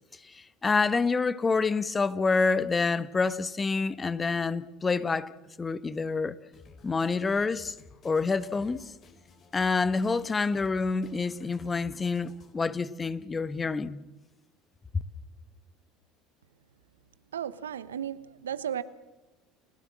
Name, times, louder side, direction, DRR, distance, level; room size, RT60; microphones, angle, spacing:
voice 1, 0.2-5.3 5.6-6.3 6.8-7.7 8.0-8.9 9.5-14.0 14.9-15.0, left 4 dB, 25° left, 1.3 m, -27 dB
sound 1, 6.5-12.5, left 4 dB, 45° left, 4.4 m, -54 dB
voice 2, 17.3-18.8, right 9 dB, 80° right, 1.0 m, -34 dB
30.0 x 17.5 x 7.6 m
hypercardioid pair, 70°, 0 cm